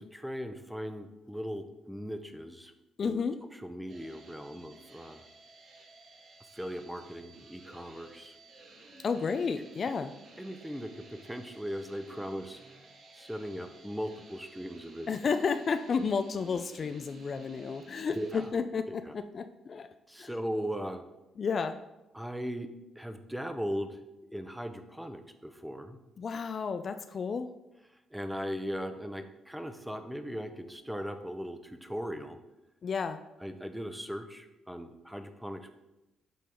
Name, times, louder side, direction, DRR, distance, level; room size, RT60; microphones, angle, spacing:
voice 1, 0.0-2.7 3.0-3.2 3.5-5.3 6.5-8.4 10.4-12.6 13.1-15.1 18.1-18.5 19.0-19.1 20.1-21.1 22.1-22.7 23.0-24.0 24.3-26.0 27.9-32.4 33.4-35.7, equal, 5° right, 8 dB, 0.7 m, -38 dB
voice 2, 3.0-3.4 9.0-10.1 15.1-19.9 20.2-20.3 21.4-21.8 26.2-27.5 32.8-33.2, left 5 dB, 45° left, 9 dB, 0.4 m, -32 dB
sound 1, 3.9-18.5, right 2 dB, 70° right, 1.5 m, -54 dB
8.3 x 3.9 x 4.4 m, 0.96 s
cardioid pair, 90°, 0 cm